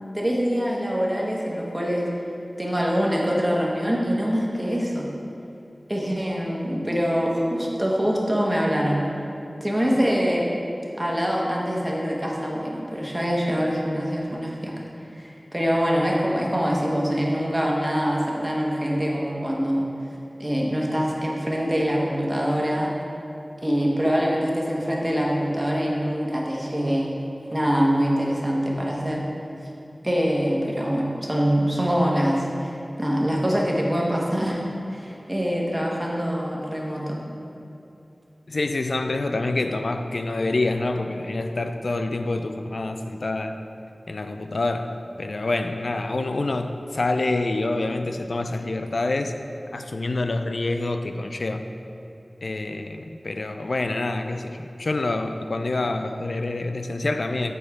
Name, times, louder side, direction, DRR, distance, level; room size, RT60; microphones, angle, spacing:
voice 1, 0.1-2.1 2.6-5.1 5.9-9.0 9.6-10.5 11.0-14.7 15.0-19.9 20.4-22.9 23.6-27.1 27.5-29.2 30.0-32.7 33.0-34.6 34.9-37.2, equal, 20° right, -3 dB, 1.2 m, -24 dB
voice 2, 38.5-43.6 44.1-49.3 49.7-51.6 52.4-57.5, left 2 dB, 85° left, 7 dB, 0.3 m, -27 dB
8.8 x 4.4 x 4.7 m, 2.8 s
wide cardioid pair, 60°, 0 cm